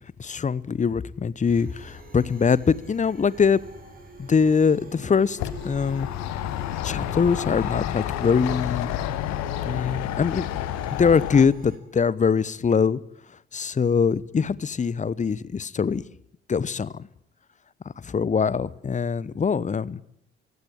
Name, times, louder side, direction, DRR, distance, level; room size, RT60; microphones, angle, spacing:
voice 1, 0.2-3.6 4.2-6.1 6.8-8.9 9.7-10.5 11.0-13.0 13.5-16.0 16.5-17.1 18.0-20.0, left 6 dB, 25° left, 21 dB, 0.9 m, -23 dB
sound 1, 1.5-11.8, right 2 dB, 30° right, 7.7 m, -44 dB
sound 2, 5.4-11.5, left 12 dB, 60° left, 1.4 m, -30 dB
22.0 x 16.5 x 10.0 m, 0.74 s
figure-of-eight pair, 45°, 31 cm